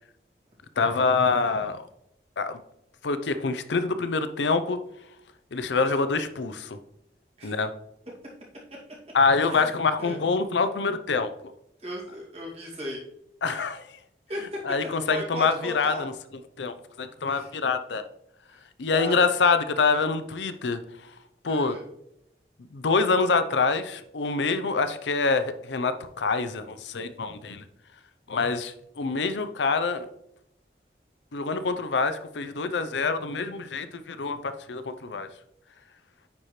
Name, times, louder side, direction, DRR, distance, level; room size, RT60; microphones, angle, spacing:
voice 1, 0.8-1.9 2.4-2.6 3.0-4.8 5.5-6.8 7.4-7.7 9.1-11.3 13.4-14.0 14.7-16.1 16.6-18.0 18.8-20.8 21.4-21.8 22.7-27.6 28.3-30.1 31.3-35.3, left 4 dB, 85° left, 11 dB, 0.6 m, -25 dB
voice 2, 11.8-13.0 14.3-14.6 15.1-16.0 17.3-17.5 18.5-18.6 18.9-19.3 21.5-21.9, equal, 35° right, -3 dB, 2.3 m, -36 dB
9.6 x 4.3 x 3.2 m, 0.79 s
head